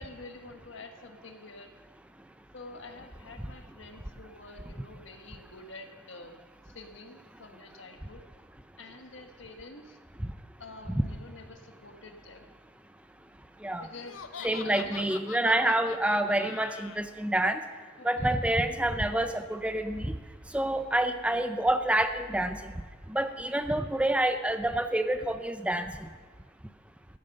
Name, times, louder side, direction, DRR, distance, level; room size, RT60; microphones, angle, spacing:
voice 1, 0.0-1.7 2.5-8.3 8.8-10.0 10.6-12.5 13.8-15.1 15.4-15.7 18.0-18.3, left 3 dB, 70° left, 5 dB, 1.5 m, -48 dB
Laughter, 13.9-17.0, left 7 dB, 90° left, 0.7 m, -44 dB
voice 2, 14.4-17.6 18.0-20.2 20.5-22.7 23.1-25.9, right 1 dB, 5° right, 8 dB, 0.4 m, -27 dB
14.0 x 9.6 x 6.6 m, 1.5 s
head